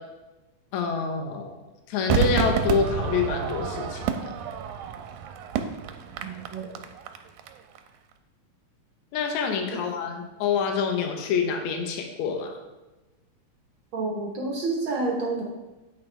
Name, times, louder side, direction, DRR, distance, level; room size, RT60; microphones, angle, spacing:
voice 1, 0.7-1.5 1.9-4.3 9.1-12.5, left 6 dB, 70° left, 3 dB, 2.2 m, -27 dB
Crowd / Fireworks, 2.1-7.5 7.8-7.9, right 8 dB, 85° right, 2.1 m, -29 dB
voice 2, 6.2-6.7 13.9-15.4, right 3 dB, 55° right, -2 dB, 1.5 m, -29 dB
9.1 x 8.4 x 3.3 m, 1.1 s
omnidirectional pair, 3.5 m